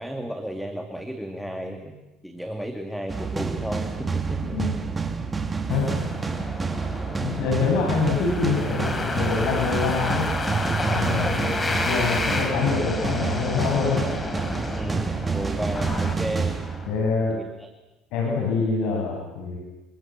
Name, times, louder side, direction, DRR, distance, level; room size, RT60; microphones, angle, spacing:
voice 1, 0.0-2.0 2.2-4.6 11.1-11.4 11.9-12.3 14.7-16.6 17.3-17.7, equal, ahead, 4 dB, 2.4 m, -33 dB
sound 1, 3.1-17.3, right 4 dB, 20° right, 2.8 m, -28 dB
sound 2, 5.7-16.9, left 2 dB, 20° left, 4.2 m, -31 dB
voice 2, 7.2-10.3 10.9-14.0 16.9-17.3 18.1-19.6, left 5 dB, 70° left, 0 dB, 7.7 m, -25 dB
28.5 x 25.5 x 7.7 m, 1.0 s
cardioid pair, 115°, 0 cm